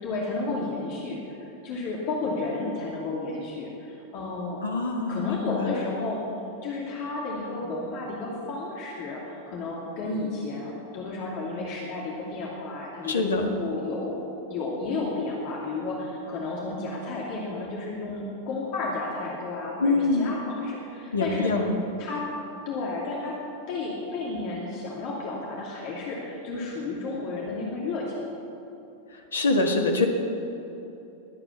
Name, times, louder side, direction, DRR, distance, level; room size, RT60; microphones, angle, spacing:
voice 1, 0.0-4.6 5.1-6.3 6.6-14.2 14.5-21.7 22.0-22.3 22.7-23.4 23.7-28.2, left 3 dB, 45° left, -3 dB, 2.7 m, -32 dB
voice 2, 4.6-5.8 13.0-13.5 19.8-20.3 21.1-21.7 29.3-30.1, left 3 dB, 70° left, 2 dB, 1.7 m, -24 dB
21.5 x 8.7 x 7.2 m, 2.9 s
figure-of-eight pair, 90°, 0 cm